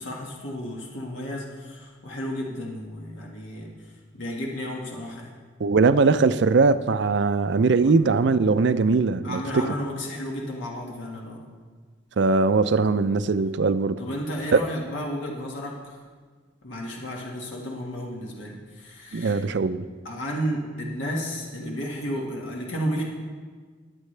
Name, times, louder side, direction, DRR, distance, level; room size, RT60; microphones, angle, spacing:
voice 1, 0.0-3.7 4.1-5.3 7.8-7.9 9.2-11.4 14.0-16.0 16.6-19.4 20.0-23.0, equal, 85° left, 1.8 m, -32 dB
voice 2, 5.6-9.7 12.2-14.0 14.5-14.6 19.1-19.9, right 4 dB, 65° right, 0.5 m, -20 dB
20.5 x 8.4 x 3.3 m
head